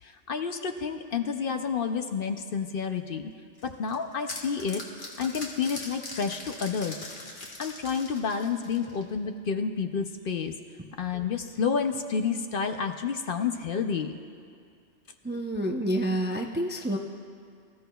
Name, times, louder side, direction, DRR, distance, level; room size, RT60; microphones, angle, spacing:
voice 1, 0.0-3.3 3.6-4.8 5.2-7.0 7.6-10.5 11.0-14.2, left 6 dB, 55° left, 6 dB, 0.7 m, -30 dB
sound 1, 3.6-9.1, left 2 dB, 85° left, 2.0 m, -41 dB
voice 2, 15.2-17.0, right 1 dB, 15° right, 2 dB, 0.4 m, -28 dB
24.5 x 14.0 x 2.3 m, 2.3 s
omnidirectional pair, 1.2 m